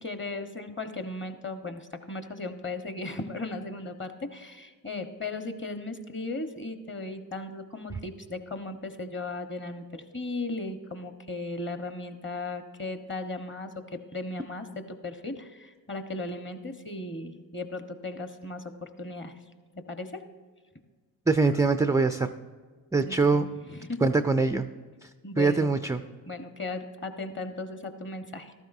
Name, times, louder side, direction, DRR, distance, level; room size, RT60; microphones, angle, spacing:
voice 1, 0.0-19.4 19.9-20.2 23.0-24.1 25.2-25.7 26.3-28.5, left 2 dB, 25° left, 7 dB, 1.3 m, -36 dB
voice 2, 21.3-22.3 22.9-23.4 24.0-24.7 25.4-26.0, right 3 dB, 10° right, 9 dB, 0.3 m, -23 dB
14.0 x 12.5 x 2.7 m, 1.5 s
supercardioid pair, 50°, 47 cm